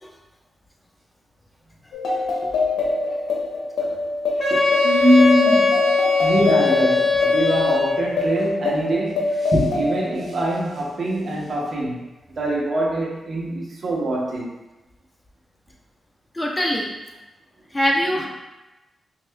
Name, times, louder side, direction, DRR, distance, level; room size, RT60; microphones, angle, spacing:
sound 1, 1.9-10.9, left 3 dB, 90° left, 0.6 m, -25 dB
voice 1, 2.4-2.9 4.5-5.9 6.2-12.0 12.3-14.5, right 1 dB, 60° right, -3 dB, 0.9 m, -23 dB
Wind instrument woodwind instrument, 4.4-8.1, left 4 dB, 55° left, 1.2 m, -20 dB
voice 2, 16.3-16.9 17.7-18.3, equal, 20° left, -1 dB, 0.6 m, -23 dB
5.4 x 2.4 x 2.2 m, 1.0 s
cardioid pair, 70°, 0 cm